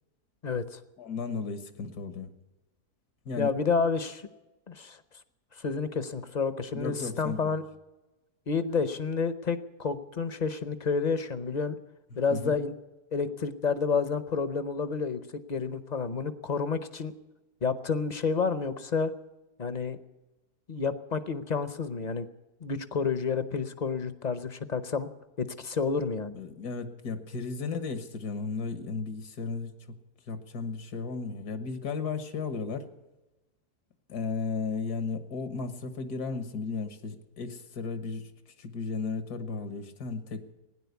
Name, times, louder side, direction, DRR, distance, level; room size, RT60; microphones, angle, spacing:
voice 1, 0.4-0.8 3.4-4.3 4.7-5.0 5.6-7.6 8.5-11.8 12.2-12.7 13.1-17.1 17.6-19.1 19.6-20.0 20.7-22.3 22.6-25.1 25.4-26.4, left 5 dB, 40° left, 12 dB, 0.6 m, -30 dB
voice 2, 1.0-2.3 3.3-3.5 6.7-7.6 12.3-12.5 26.3-29.7 30.3-32.9 34.1-38.3 38.6-40.5, left 4 dB, 85° left, 10 dB, 1.9 m, -34 dB
16.5 x 10.0 x 8.2 m, 1.1 s
omnidirectional pair, 1.6 m